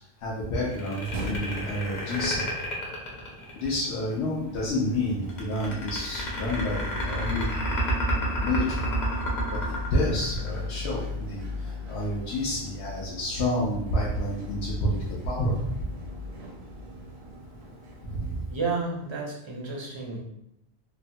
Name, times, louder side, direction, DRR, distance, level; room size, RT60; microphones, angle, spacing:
voice 1, 0.2-2.4 3.6-8.9 9.5-15.0 15.2-15.6 18.0-18.4, left 1 dB, 80° left, -6 dB, 0.9 m, -29 dB
sound 1, 0.7-3.9 5.3-10.8, equal, 50° left, 0.8 m, -30 dB
sound 2, 0.9-19.0, left 3 dB, 75° right, 0.8 m, -38 dB
voice 2, 18.5-20.2, right 3 dB, 45° right, -2 dB, 0.4 m, -31 dB
3.0 x 2.1 x 2.6 m, 0.80 s
omnidirectional pair, 1.1 m